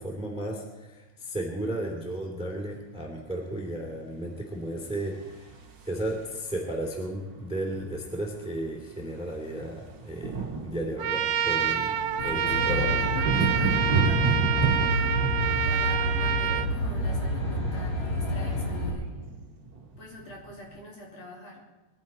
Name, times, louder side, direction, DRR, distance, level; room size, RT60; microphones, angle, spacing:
voice 1, 0.0-5.5 5.9-10.3 10.6-13.0, right 1 dB, ahead, 1 dB, 2.3 m, -34 dB
sound 1, 5.0-6.6 7.9-8.0 8.2-8.4 8.7-20.8, right 4 dB, 45° right, 1.7 m, -32 dB
Trumpet, 11.0-16.7, right 9 dB, 80° right, 2.2 m, -27 dB
Aircraft, 12.2-18.9, left 1 dB, 75° left, 5.1 m, -29 dB
voice 2, 12.3-15.2 15.6-19.1 20.0-21.6, left 2 dB, 55° left, -2 dB, 4.0 m, -44 dB
21.5 x 14.0 x 4.3 m, 1.2 s
omnidirectional pair, 3.8 m